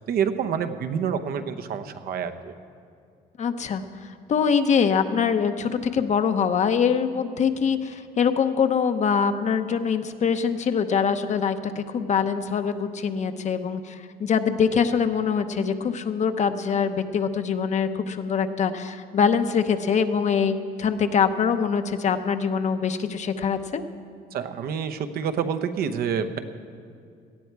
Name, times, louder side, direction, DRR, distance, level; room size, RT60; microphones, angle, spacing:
voice 1, 0.0-2.5 24.3-26.4, right 7 dB, 65° right, 8 dB, 1.0 m, -27 dB
voice 2, 3.4-23.8, left 6 dB, 45° left, 9 dB, 0.9 m, -24 dB
18.0 x 13.0 x 4.7 m, 2.4 s
cardioid pair, 110°, 17 cm